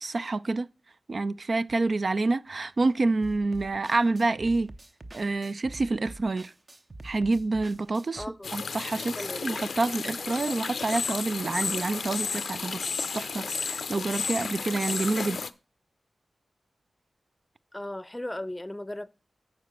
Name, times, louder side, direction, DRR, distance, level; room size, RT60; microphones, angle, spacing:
voice 1, 0.0-0.7 1.1-4.7 5.1-6.5 7.0-8.2 8.5-15.4, right 3 dB, 60° right, 0.3 m, -28 dB
sound 1, 3.2-8.3, right 1 dB, 40° right, 0.8 m, -46 dB
voice 2, 8.1-8.5 9.1-9.5 17.7-19.1, left 1 dB, 15° left, 0.6 m, -37 dB
sound 2, 8.4-15.5, left 5 dB, 80° left, 0.5 m, -33 dB
8.8 x 4.3 x 6.7 m
cardioid pair, 40°, 0 cm